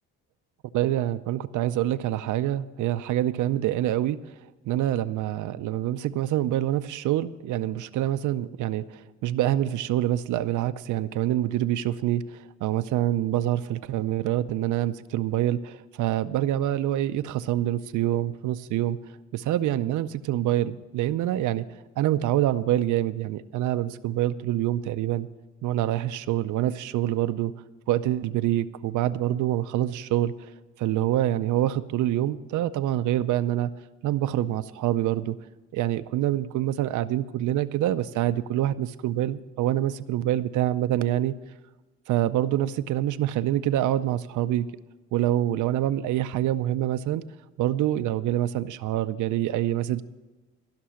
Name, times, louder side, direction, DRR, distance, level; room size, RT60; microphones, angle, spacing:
voice 1, 0.7-4.3 4.6-19.0 19.3-21.6 22.0-25.3 25.6-27.5 27.9-30.5 30.8-33.7 34.0-35.4 35.7-41.4 42.1-44.7 45.1-47.2 47.6-50.0, right 13 dB, 80° right, 12 dB, 0.6 m, -26 dB
14.5 x 6.1 x 8.7 m, 1.2 s
cardioid pair, 90°, 30 cm